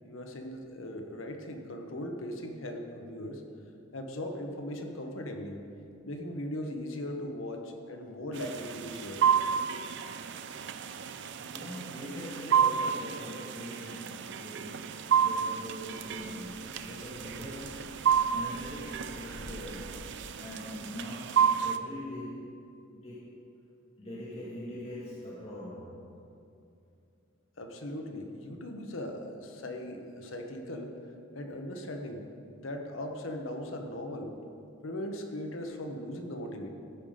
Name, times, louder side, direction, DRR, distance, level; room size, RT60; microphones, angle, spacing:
voice 1, 0.0-3.4 3.9-5.6 6.0-9.2 27.6-30.9 31.3-32.2 32.6-34.3 34.8-36.7, left 1 dB, 75° left, 4 dB, 1.1 m, -39 dB
sound 1, 8.3-21.8, right 7 dB, 60° right, 0.4 m, -31 dB
voice 2, 11.2-20.0 20.4-22.5 22.9-23.3 24.0-26.1, equal, 30° left, -9 dB, 1.6 m, -42 dB
sound 2, 15.5-20.2, equal, 45° left, 1.0 m, -51 dB
14.5 x 5.7 x 5.1 m, 2.5 s
head